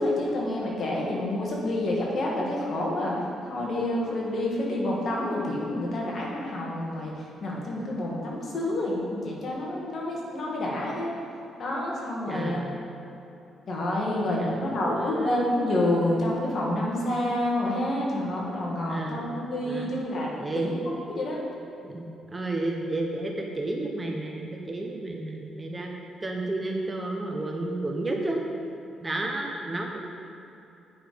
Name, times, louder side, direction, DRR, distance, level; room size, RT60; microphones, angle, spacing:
voice 1, 0.0-11.1 11.6-12.6 13.7-21.4, left 1 dB, 50° left, -3 dB, 2.1 m, -28 dB
voice 2, 12.3-12.8 14.4-15.5 18.9-19.4 19.7-19.9 20.4-20.7 21.8-25.9 26.2-28.4 29.0-30.0, right 2 dB, 20° right, 1 dB, 1.0 m, -32 dB
8.8 x 5.7 x 5.2 m, 2.9 s
cardioid pair, 90°, 0 cm